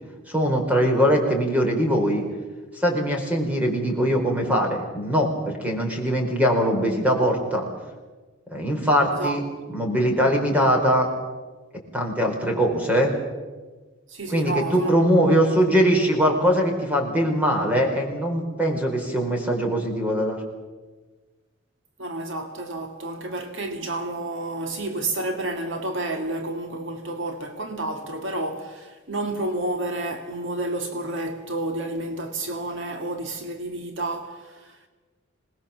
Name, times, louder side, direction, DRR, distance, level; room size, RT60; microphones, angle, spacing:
voice 1, 0.3-2.3 2.7-7.7 8.5-9.4 9.7-11.1 11.9-13.1 14.3-20.4, equal, 5° right, 4.4 m, -22 dB
voice 2, 9.0-9.4 14.1-14.9 15.2-15.3 22.0-34.9, right 2 dB, 60° right, 2.0 m, -30 dB
26.5 x 20.0 x 7.3 m
head